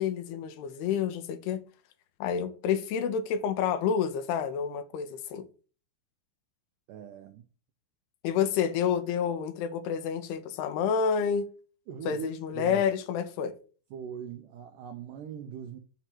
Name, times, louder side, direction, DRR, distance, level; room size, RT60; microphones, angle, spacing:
voice 1, 0.0-1.6 2.2-5.5 8.2-11.5 12.1-13.5, left 7 dB, 90° left, 2.7 m, -29 dB
voice 2, 6.9-7.5 11.9-12.8 13.9-15.8, right 8 dB, 90° right, 1.8 m, -40 dB
7.9 x 3.0 x 6.0 m
omnidirectional pair, 4.5 m